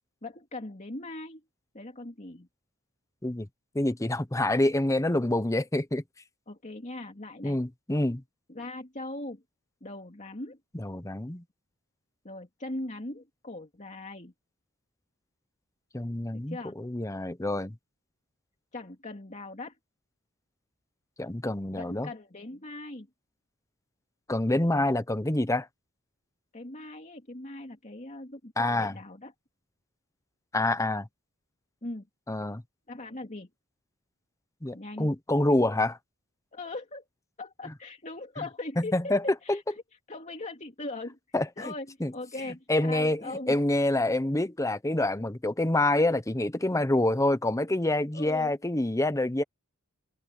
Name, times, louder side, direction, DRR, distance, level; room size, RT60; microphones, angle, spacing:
voice 1, 0.2-1.4 1.7-2.5 6.5-7.6 8.5-9.4 9.8-10.6 12.2-14.3 16.3-16.8 18.7-19.8 21.7-23.1 26.5-29.3 31.8-32.1 32.9-33.5 34.7-35.1 36.5-37.0 37.4-39.6 40.1-41.2 41.6-43.6 48.1-48.6, left 2 dB, 35° left, 2.6 m, -40 dB
voice 2, 3.7-6.0 7.4-8.2 10.7-11.4 15.9-17.7 21.2-22.1 24.3-25.7 28.6-28.9 30.5-31.1 32.3-32.6 34.6-36.0 38.8-39.2 39.5-39.6 41.3-41.7 42.0-42.1 42.7-49.4, left 1 dB, 15° left, 0.9 m, -27 dB
head